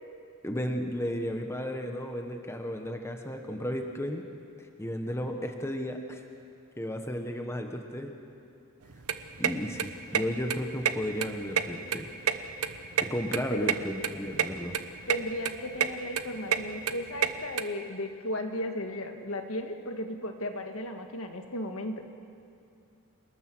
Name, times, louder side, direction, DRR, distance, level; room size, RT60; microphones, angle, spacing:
voice 1, 0.4-4.2 4.6-6.2 6.8-8.1 9.4-12.1 13.1-14.8, equal, 10° left, 4 dB, 1.2 m, -34 dB
sound 1, 8.8-17.6, right 7 dB, 90° right, 1.0 m, -30 dB
voice 2, 15.1-22.0, left 1 dB, 65° left, 5 dB, 1.7 m, -35 dB
28.5 x 19.5 x 6.2 m, 2.5 s
head